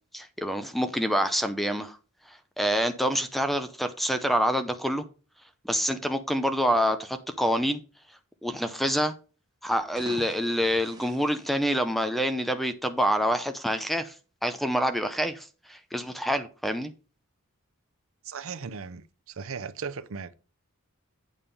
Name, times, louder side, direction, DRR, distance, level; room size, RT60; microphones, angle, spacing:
voice 1, 0.1-2.0 2.3-5.0 5.6-7.8 8.4-9.1 9.6-14.1 14.4-16.9, equal, ahead, 0.6 m, -27 dB
sound 1, 9.8-12.3, right 1 dB, 20° right, 1.5 m, -47 dB
voice 2, 18.2-20.3, right 5 dB, 65° right, 0.6 m, -37 dB
9.0 x 3.7 x 6.7 m
head